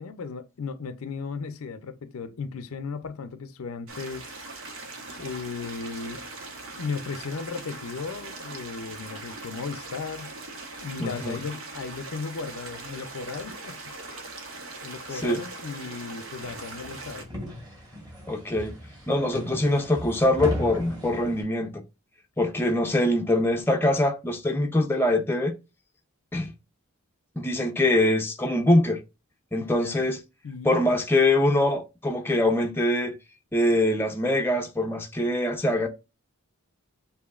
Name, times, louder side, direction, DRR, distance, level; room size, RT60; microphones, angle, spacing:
voice 1, 0.0-4.4 5.2-6.3 6.7-10.3 10.8-13.9 14.8-17.3 29.6-30.1 30.4-30.7, left 5 dB, 75° left, 0.5 m, -36 dB
sound 1, 3.9-17.2, right 3 dB, 65° right, 1.0 m, -40 dB
voice 2, 11.0-11.4 15.2-15.4 18.3-18.7 19.1-21.8 22.4-25.5 26.3-26.5 27.4-29.0 29.5-30.2 30.6-33.2 33.5-35.9, left 1 dB, 10° left, 0.6 m, -23 dB
sound 2, 16.4-21.4, equal, 20° right, 2.5 m, -36 dB
6.8 x 2.7 x 2.4 m
head